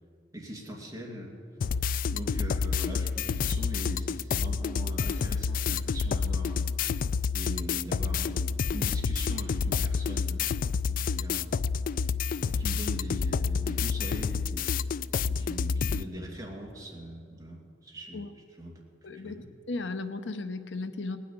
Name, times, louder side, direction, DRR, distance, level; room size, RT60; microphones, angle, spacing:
voice 1, 0.3-1.4 2.1-6.7 7.3-10.5 10.9-11.6 12.4-14.8 15.3-18.2 18.6-19.4, equal, 20° right, -2 dB, 2.5 m, -41 dB
sound 1, 1.6-16.0, left 5 dB, 50° left, 0.3 m, -29 dB
voice 2, 19.0-21.2, left 3 dB, 80° left, 10 dB, 0.8 m, -36 dB
19.0 x 6.4 x 9.4 m, 2.3 s
head